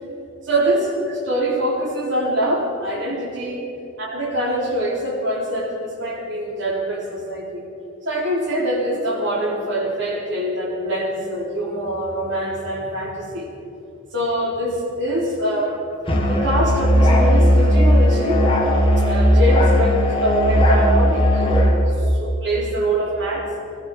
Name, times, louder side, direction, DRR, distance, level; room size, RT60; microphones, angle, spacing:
voice 1, 0.4-3.7 4.0-7.7 8.0-13.5 14.1-15.9 16.3-18.5 18.9-23.5, right 1 dB, 65° right, -3 dB, 3.9 m, -24 dB
Musical instrument, 16.1-21.8, equal, 25° left, 2.2 m, -16 dB
17.5 x 14.0 x 5.5 m, 2.9 s
head